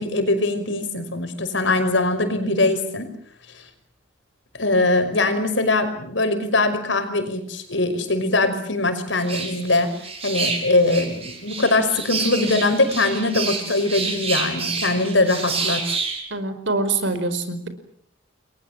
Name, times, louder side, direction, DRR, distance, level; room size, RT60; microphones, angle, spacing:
voice 1, 0.0-3.1 4.6-9.9 10.2-15.8, left 2 dB, 75° left, 9 dB, 5.5 m, -21 dB
sound 1, 9.2-16.2, right 4 dB, 30° right, 7.8 m, -28 dB
voice 2, 16.3-17.7, right 3 dB, 70° right, 11 dB, 5.0 m, -24 dB
30.0 x 22.5 x 7.6 m, 0.64 s
head